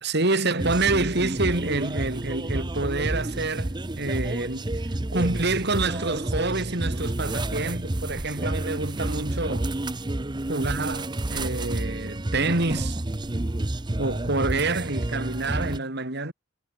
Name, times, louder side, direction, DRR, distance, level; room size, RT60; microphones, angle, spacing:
voice 1, 0.0-4.8 5.1-9.7 10.5-13.0 14.0-16.3, right 3 dB, 55° right, 2.8 m, -27 dB
sound 1, 0.6-15.8, right 1 dB, 20° right, 0.7 m, -30 dB
head